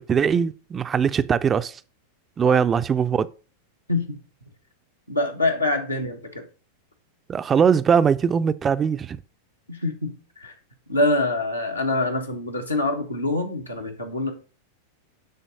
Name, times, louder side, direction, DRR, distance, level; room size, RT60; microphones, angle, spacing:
voice 1, 0.1-1.8 2.4-3.3 7.3-9.2, right 7 dB, 20° right, 0.4 m, -21 dB
voice 2, 3.9-4.2 5.1-6.4 9.7-10.5 10.9-14.3, left 2 dB, 85° left, 1.5 m, -25 dB
9.2 x 4.0 x 5.2 m
figure-of-eight pair, 90°, 0 cm